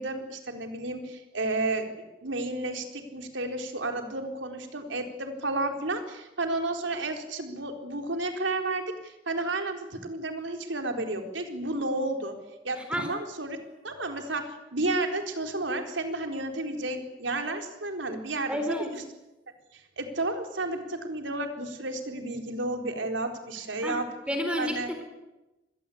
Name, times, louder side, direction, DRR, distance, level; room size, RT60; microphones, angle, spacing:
voice 1, 0.0-12.3 12.6-13.6 13.8-19.0 19.7-24.1 24.6-24.9, right 2 dB, 90° right, 5 dB, 4.1 m, -32 dB
voice 2, 18.5-18.9 23.8-24.0 24.3-25.0, equal, 5° right, 5 dB, 3.8 m, -30 dB
26.5 x 20.5 x 8.6 m, 1.0 s
head